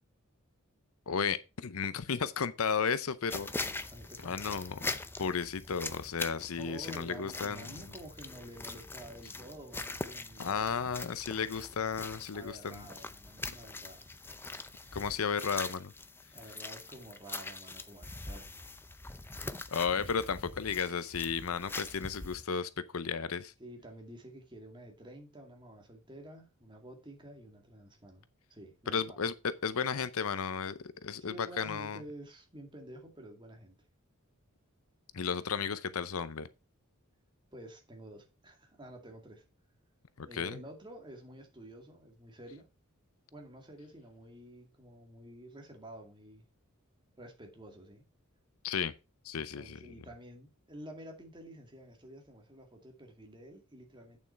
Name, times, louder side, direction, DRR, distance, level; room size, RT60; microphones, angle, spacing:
voice 1, 1.1-3.5 4.2-4.8 5.2-7.8 10.4-12.9 14.9-15.9 19.7-23.5 28.9-32.0 35.1-36.5 40.2-40.6 48.6-48.9 49.2-49.8, left 6 dB, 70° left, 0.6 m, -34 dB
sound 1, 3.3-22.4, left 3 dB, 10° left, 0.6 m, -43 dB
voice 2, 3.9-4.6 6.5-10.7 12.3-14.1 16.3-18.7 23.6-29.2 31.3-33.8 37.5-39.4 40.2-42.7 43.3-46.4 47.2-48.0 49.3-54.2, right 1 dB, 20° right, 2.3 m, -50 dB
8.7 x 7.1 x 4.5 m
head